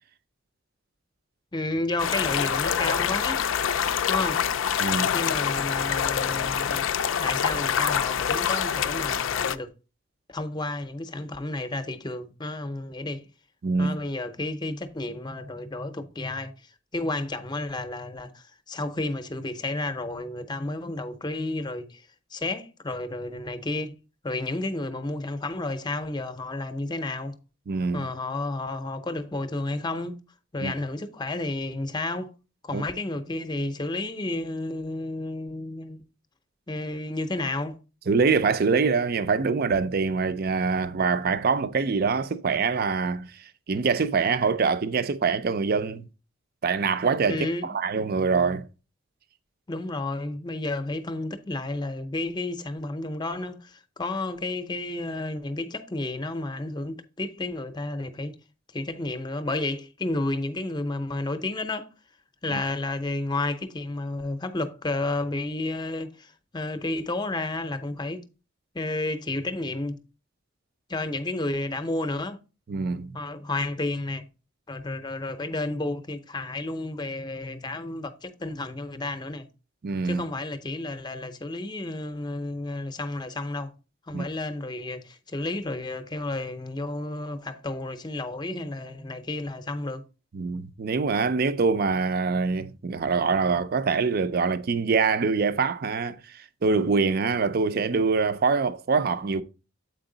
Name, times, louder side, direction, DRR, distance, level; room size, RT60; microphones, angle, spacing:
voice 1, 1.5-3.5 4.1-4.4 5.1-6.8 7.2-9.7 10.3-13.3 13.8-16.5 16.9-22.0 22.3-23.9 24.2-27.4 27.9-30.2 30.5-32.3 32.6-36.0 36.7-37.8 47.3-47.7 49.7-58.4 58.7-61.9 62.4-68.2 68.7-70.0 70.9-72.4 73.1-74.3 74.7-79.5 80.0-83.7 84.1-90.0, left 2 dB, 20° left, 0.7 m, -31 dB
sound 1, 2.0-9.6, left 8 dB, 65° left, 0.4 m, -26 dB
voice 2, 4.8-5.1 13.6-14.0 27.7-28.1 30.6-30.7 32.7-32.8 38.1-43.3 43.7-46.1 46.6-48.7 62.5-62.6 72.7-73.1 79.8-80.2 84.1-84.2 90.3-99.4, right 4 dB, 45° right, 0.4 m, -24 dB
8.0 x 4.6 x 3.8 m
head